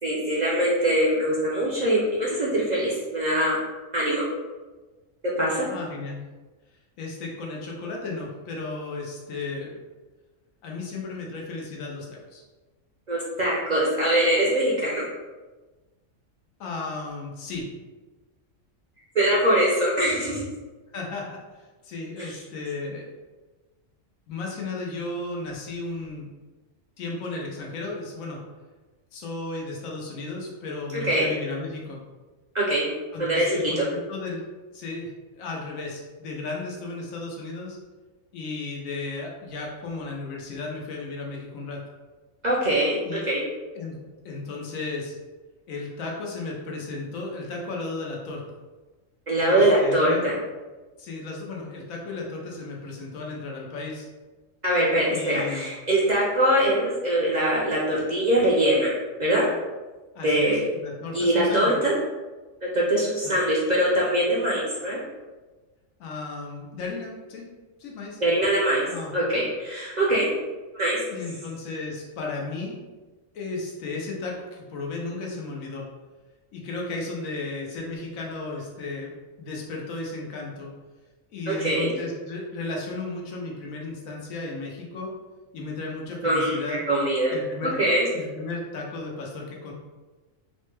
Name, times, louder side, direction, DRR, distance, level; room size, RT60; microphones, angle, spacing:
voice 1, 0.0-3.6 3.9-4.2 5.4-5.7 13.1-15.0 19.1-20.4 31.0-31.3 32.5-32.8 33.2-33.8 42.4-43.4 49.3-50.3 54.6-58.9 59.2-59.5 60.2-60.6 61.1-61.9 62.6-65.0 68.2-68.9 69.1-70.3 70.7-71.0 81.5-81.9 86.2-87.3 87.8-88.1, right 1 dB, 50° right, -6 dB, 0.5 m, -22 dB
voice 2, 5.7-6.2 7.0-9.8 10.6-12.4 16.6-17.7 20.9-23.1 24.3-26.3 27.0-28.4 29.1-32.0 33.1-34.4 34.7-37.8 38.3-41.8 43.1-43.2 43.7-43.9 44.2-45.1 45.7-48.4 49.5-50.2 51.0-54.1 55.1-55.7 60.1-61.7 63.2-63.3 66.0-67.4 67.8-68.2 68.9-69.1 71.1-72.8 73.3-75.8 76.5-79.1 79.4-80.7 81.3-85.1 85.5-86.8 87.3-87.7 88.1-89.7, left 3 dB, 85° left, -1 dB, 1.2 m, -34 dB
4.1 x 2.1 x 3.2 m, 1.3 s
omnidirectional pair, 1.4 m